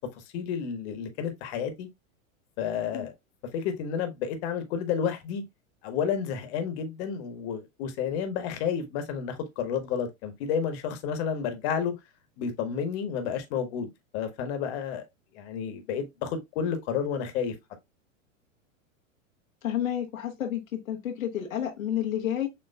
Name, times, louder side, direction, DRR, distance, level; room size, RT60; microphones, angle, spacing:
voice 1, 0.1-1.9 2.6-3.1 3.5-5.4 5.8-11.9 12.4-13.9 14.1-15.0 15.3-17.5, left 7 dB, 55° left, 1.3 m, -31 dB
voice 2, 19.6-22.5, left 10 dB, 85° left, 1.0 m, -30 dB
6.8 x 3.0 x 2.3 m
hypercardioid pair, 100°, 39 cm